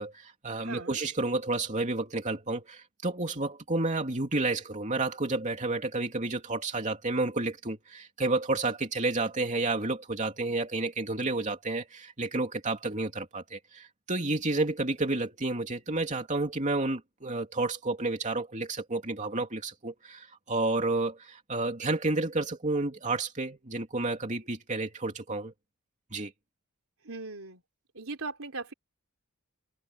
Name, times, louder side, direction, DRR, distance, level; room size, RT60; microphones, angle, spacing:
voice 1, 0.0-25.5 26.1-26.3, right 2 dB, 35° right, 2.9 m, -30 dB
voice 2, 0.6-1.0 27.0-27.6 27.9-28.7, right 3 dB, 70° right, 3.9 m, -39 dB
head